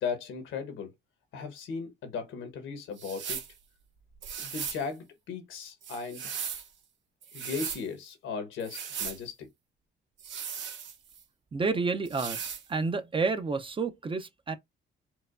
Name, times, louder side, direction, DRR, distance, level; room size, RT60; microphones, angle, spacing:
voice 1, 0.0-0.9 1.3-3.4 4.4-6.3 7.3-9.5, left 5 dB, 80° left, 1.1 m, -37 dB
sound 1, 3.0-3.5 4.2-4.8 5.8-6.7 7.2-7.8 8.6-9.2 10.2-11.2 12.1-12.7, right 7 dB, 65° right, 0.9 m, -37 dB
voice 2, 11.5-12.4 12.7-14.6, right 4 dB, 25° right, 0.5 m, -29 dB
4.5 x 2.2 x 2.4 m
cardioid pair, 90°, 20 cm